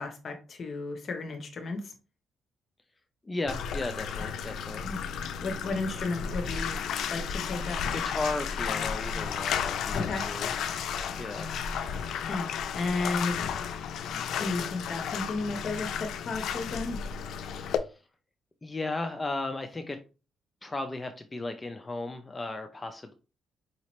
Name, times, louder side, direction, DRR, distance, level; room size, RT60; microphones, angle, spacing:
voice 1, 0.0-1.9 4.8-5.0 5.4-6.8 7.1-7.8 9.9-10.2 12.3-12.5 12.7-13.4 14.1-17.0, left 3 dB, 50° left, 5 dB, 0.8 m, -33 dB
voice 2, 3.2-4.9 7.7-10.5 11.1-11.5 17.4-18.0 18.6-20.0 20.6-23.1, left 2 dB, 20° left, 6 dB, 0.5 m, -35 dB
Bathtub (filling or washing), 3.5-17.8, left 7 dB, 75° left, 0.4 m, -33 dB
sound 1, 4.6-13.5, right 3 dB, 40° right, 1.2 m, -53 dB
5.0 x 2.7 x 3.0 m, 0.32 s
cardioid pair, 90°, 0 cm